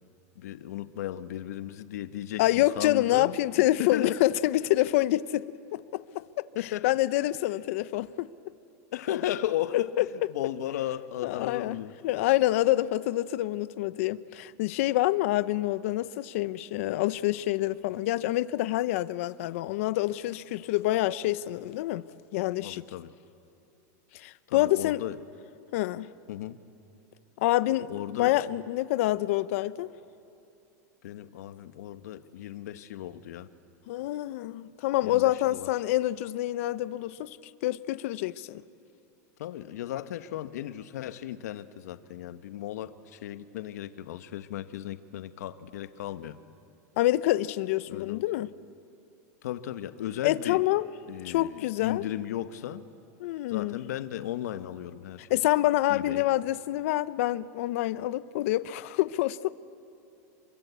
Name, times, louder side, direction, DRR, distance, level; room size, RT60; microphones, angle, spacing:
voice 1, 0.3-3.4 3.8-4.2 6.5-6.9 8.9-11.9 22.6-23.1 24.5-25.2 26.3-26.6 27.9-28.4 31.0-33.5 35.0-35.7 39.4-46.4 47.9-48.2 49.4-50.6 51.1-52.8 53.5-55.4 55.9-56.3, left 12 dB, 75° left, 1.2 m, -35 dB
voice 2, 2.4-5.4 5.7-6.4 6.8-8.3 10.0-10.1 11.2-11.8 12.0-22.0 22.3-22.8 24.1-25.0 25.7-26.1 27.4-29.9 33.9-37.4 37.6-38.6 47.0-48.5 50.2-50.9 51.2-52.0 53.2-53.8 55.3-59.5, left 16 dB, 55° left, 0.7 m, -27 dB
27.5 x 23.5 x 8.3 m
supercardioid pair, 160°, 9 cm